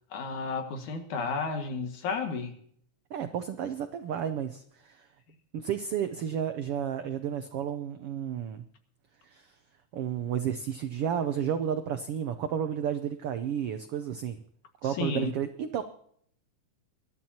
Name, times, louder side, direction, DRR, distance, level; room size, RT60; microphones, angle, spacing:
voice 1, 0.1-2.5 15.0-15.3, left 4 dB, 75° left, 5 dB, 3.3 m, -32 dB
voice 2, 3.1-5.1 5.5-8.6 9.2-9.6 9.9-14.4 14.8-15.8, right 9 dB, 80° right, 9 dB, 1.3 m, -32 dB
24.0 x 12.5 x 2.9 m, 0.65 s
omnidirectional pair, 3.6 m